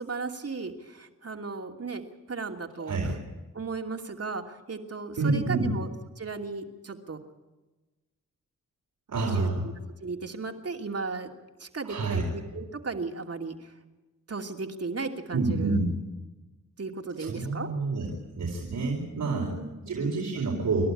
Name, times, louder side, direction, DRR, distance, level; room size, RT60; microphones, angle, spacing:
voice 1, 0.0-3.0 3.5-5.9 6.2-7.2 9.3-9.5 10.0-11.3 11.6-13.7 14.3-15.8 16.8-17.7 19.3-20.2, right 4 dB, 50° right, 4 dB, 2.8 m, -35 dB
voice 2, 2.8-3.1 5.2-5.7 9.1-9.7 11.8-12.2 15.3-16.0 17.2-18.1 18.4-19.5 19.9-20.9, right 3 dB, 75° right, -1 dB, 4.5 m, -28 dB
28.5 x 12.0 x 10.0 m, 1.1 s
cardioid pair, 45°, 31 cm